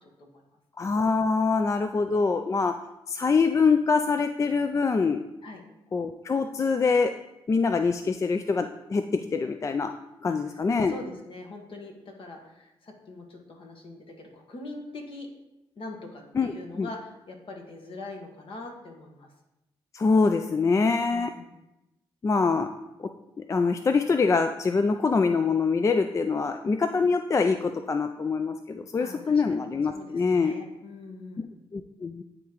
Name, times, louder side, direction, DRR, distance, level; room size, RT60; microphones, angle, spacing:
voice 1, 0.8-2.7 3.1-5.2 5.9-7.1 7.5-9.0 9.3-9.9 10.2-10.9 16.3-16.9 19.9-21.3 22.2-22.7 23.0-23.1 23.4-30.5 31.7-32.2, left 4 dB, 30° left, 7 dB, 0.3 m, -24 dB
voice 2, 10.9-15.3 15.8-19.3 21.0-21.5 29.0-29.6 29.9-31.5, left 2 dB, 60° left, 2 dB, 1.3 m, -42 dB
9.8 x 3.6 x 3.0 m, 0.93 s
cardioid pair, 70°, 10 cm